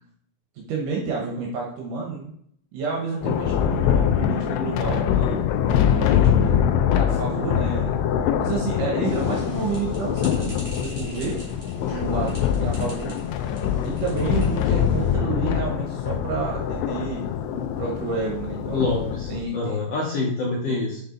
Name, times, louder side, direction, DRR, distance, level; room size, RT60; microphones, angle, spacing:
voice 1, 0.6-2.3 2.7-6.7 6.9-8.0 8.4-11.4 11.7-13.2 13.8-18.8 19.3-19.8 20.7-20.8, right 4 dB, 75° right, -1 dB, 2.5 m, -30 dB
Thunder, 3.2-19.4, left 9 dB, 80° left, 1.6 m, -23 dB
sound 1, 9.0-15.1, equal, 5° right, 2.1 m, -42 dB
voice 2, 18.7-21.0, left 3 dB, 65° left, -3 dB, 1.7 m, -27 dB
5.5 x 5.3 x 3.8 m, 0.69 s
omnidirectional pair, 3.7 m